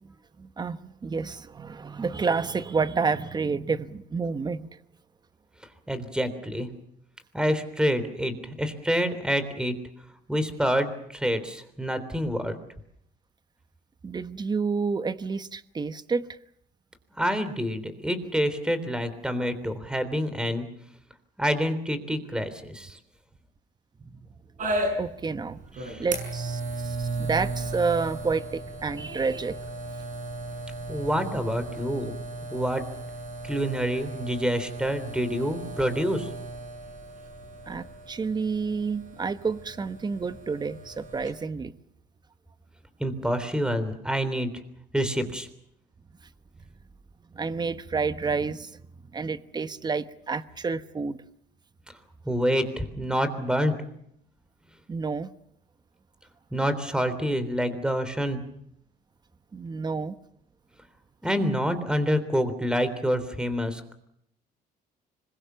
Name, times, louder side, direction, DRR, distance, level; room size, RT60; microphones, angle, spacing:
voice 1, 0.0-4.7 14.0-16.4 24.0-24.2 24.9-25.6 26.0-29.6 37.7-41.7 47.3-48.8 49.1-51.2 54.9-55.3 59.5-60.1, right 4 dB, 25° right, 12 dB, 1.2 m, -29 dB
voice 2, 5.9-6.7 7.3-9.7 10.3-12.6 17.2-20.7 21.4-23.0 25.8-26.0 30.9-32.1 32.5-32.8 33.4-36.3 43.0-44.5 44.9-45.5 52.3-53.7 56.5-58.4 61.2-63.9, equal, 5° right, 12 dB, 3.5 m, -27 dB
sound 1, 24.6-41.3, right 2 dB, 50° right, 6.5 m, -35 dB
25.5 x 22.0 x 7.0 m, 0.74 s
cardioid pair, 110°, 17 cm